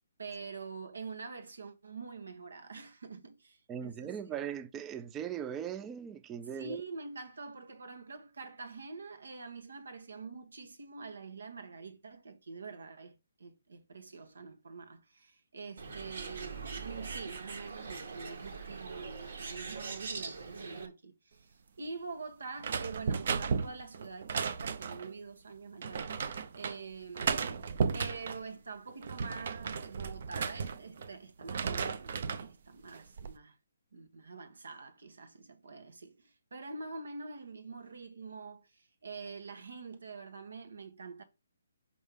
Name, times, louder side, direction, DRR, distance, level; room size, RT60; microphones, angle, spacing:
voice 1, 0.2-4.4 6.6-26.1 26.5-33.6 33.9-41.2, right 4 dB, 85° right, 1.4 m, -45 dB
voice 2, 3.7-6.8, right 9 dB, 15° right, 0.3 m, -39 dB
Bird, 15.8-20.9, right 4 dB, 65° right, 1.7 m, -42 dB
sound 1, 22.6-25.1 25.8-26.8 27.2-28.4 28.9-31.1 31.4-32.5 32.9-33.4, right 5 dB, 50° right, 0.6 m, -34 dB
5.4 x 5.4 x 3.7 m
hypercardioid pair, 165°, 0 cm